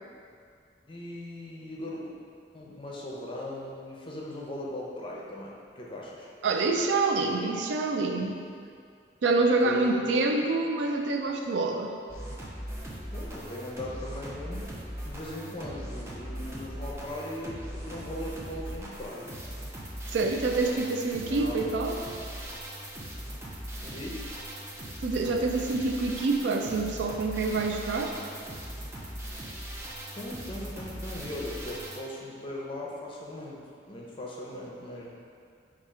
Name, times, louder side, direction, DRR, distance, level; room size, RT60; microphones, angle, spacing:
voice 1, 0.9-2.1 2.5-6.3 9.6-10.2 13.1-14.8 15.0-19.4 21.2-21.6 23.8-24.3 30.1-35.2, left 1 dB, 30° left, -3 dB, 0.6 m, -39 dB
voice 2, 6.4-8.4 9.2-11.9 20.1-21.9 25.0-28.2, right 3 dB, 90° right, 3 dB, 0.4 m, -26 dB
sound 1, 12.1-32.0, right 1 dB, 15° right, 0.4 m, -39 dB
4.2 x 2.4 x 4.7 m, 2.3 s
head